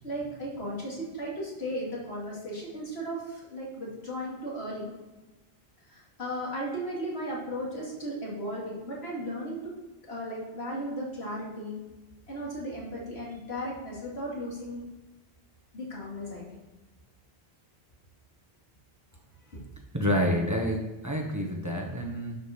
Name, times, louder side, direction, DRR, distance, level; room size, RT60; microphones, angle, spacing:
voice 1, 0.0-4.9 5.9-9.8 10.1-11.8 12.3-14.9 15.7-16.4 19.5-19.6, equal, 90° left, -4 dB, 3.1 m, -36 dB
voice 2, 19.9-22.4, equal, 15° right, 0 dB, 1.3 m, -28 dB
11.5 x 5.2 x 5.3 m, 1.1 s
omnidirectional pair, 1.0 m